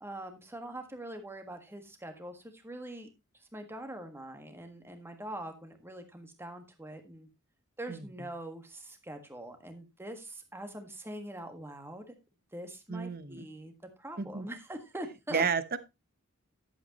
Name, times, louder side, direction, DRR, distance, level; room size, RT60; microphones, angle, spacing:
voice 1, 0.0-3.1 3.3-7.3 7.8-12.1 12.5-13.7 14.0-15.4, right 1 dB, 10° right, 6 dB, 1.6 m, -43 dB
voice 2, 12.9-13.5 14.2-14.5 15.3-15.8, right 5 dB, 45° right, 13 dB, 0.9 m, -31 dB
11.0 x 8.2 x 3.0 m, 0.23 s
head